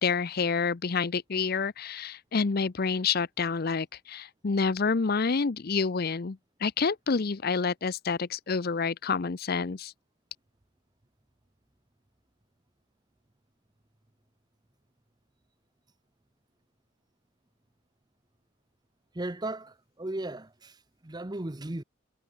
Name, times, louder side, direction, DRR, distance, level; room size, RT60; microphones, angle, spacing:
voice 1, 0.0-9.9, left 5 dB, 45° left, 0.6 m, -28 dB
voice 2, 19.1-21.8, right 1 dB, 20° right, 0.8 m, -36 dB
head